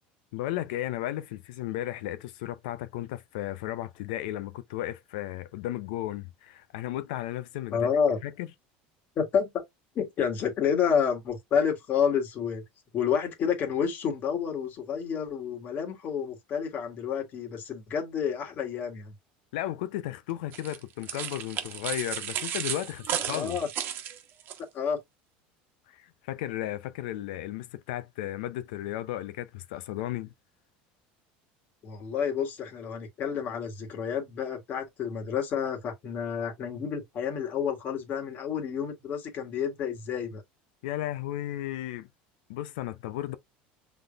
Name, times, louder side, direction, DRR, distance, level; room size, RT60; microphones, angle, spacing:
voice 1, 0.3-7.9 8.2-8.5 19.5-23.6 25.9-30.3 40.8-42.1 42.5-43.4, left 14 dB, 80° left, 0.6 m, -34 dB
voice 2, 7.7-8.2 9.2-9.6 10.0-12.6 12.9-19.1 23.3-23.7 24.7-25.0 31.8-40.4, left 7 dB, 45° left, 1.9 m, -29 dB
sound 1, 20.5-24.6, right 10 dB, 50° right, 1.1 m, -34 dB
5.7 x 3.6 x 2.4 m
supercardioid pair, 115°, 5 cm